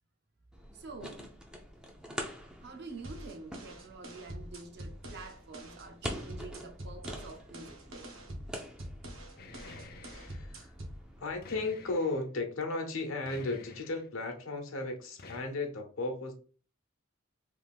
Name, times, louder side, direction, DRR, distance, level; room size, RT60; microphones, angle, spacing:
sound 1, 0.5-11.4, equal, 5° right, 0.4 m, -46 dB
voice 1, 0.7-1.2 2.6-8.1, right 3 dB, 50° right, 0.6 m, -47 dB
sound 2, 3.0-11.0, right 1 dB, 70° right, 1.0 m, -45 dB
sound 3, 9.4-10.4 11.4-12.3 13.2-14.1 15.2-15.4, left 3 dB, 45° left, 0.5 m, -50 dB
voice 2, 10.1-10.7 11.2-16.3, left 3 dB, 75° left, 0.9 m, -35 dB
3.4 x 2.5 x 3.5 m
head